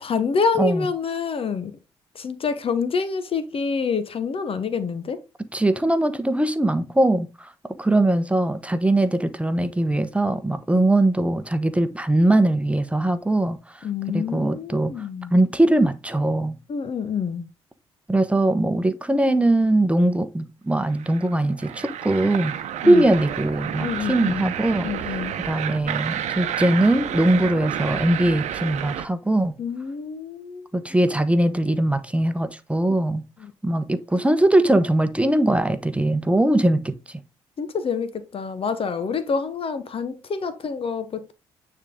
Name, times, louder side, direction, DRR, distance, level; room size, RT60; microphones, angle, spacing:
voice 1, 0.0-1.7 2.1-5.2 13.8-15.3 16.7-17.5 22.8-23.1 23.8-24.5 24.8-25.4 29.6-30.7 33.4-33.5 37.6-41.3, left 5 dB, 45° left, 1.0 m, -27 dB
voice 2, 0.6-0.9 5.5-7.5 7.8-15.0 15.3-16.6 18.1-22.5 22.8-25.2 25.4-29.5 30.7-33.2 33.6-37.2, right 1 dB, 10° right, 1.1 m, -21 dB
sound 1, 20.9-29.1, right 10 dB, 60° right, 0.9 m, -30 dB
9.4 x 3.8 x 3.7 m
hypercardioid pair, 45°, 13 cm